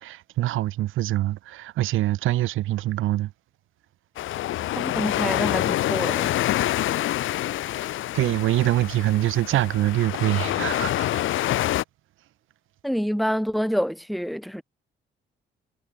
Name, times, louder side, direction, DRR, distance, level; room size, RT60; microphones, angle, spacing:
voice 1, 0.0-3.3 7.8-7.9 8.1-11.2 11.5-11.6, right 15 dB, 90° right, 7.6 m, -24 dB
sound 1, 4.2-11.8, left 14 dB, 80° left, 1.5 m, -26 dB
voice 2, 4.8-6.3 12.8-14.6, equal, ahead, 5.8 m, -27 dB
cardioid pair, 90°, 20 cm